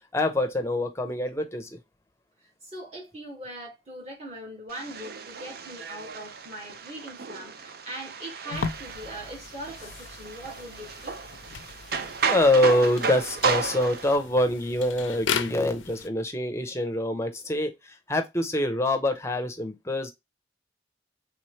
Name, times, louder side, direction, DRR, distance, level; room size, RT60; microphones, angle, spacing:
voice 1, 0.1-1.7 12.3-20.1, left 1 dB, 15° left, 0.7 m, -25 dB
voice 2, 2.6-11.2 12.0-12.2 12.7-12.8 13.6-13.8, right 1 dB, 35° right, 2.0 m, -41 dB
sound 1, 4.7-14.2, right 5 dB, 55° right, 0.5 m, -33 dB
sound 2, 8.5-16.1, left 6 dB, 90° left, 0.5 m, -37 dB
4.3 x 3.5 x 3.2 m
head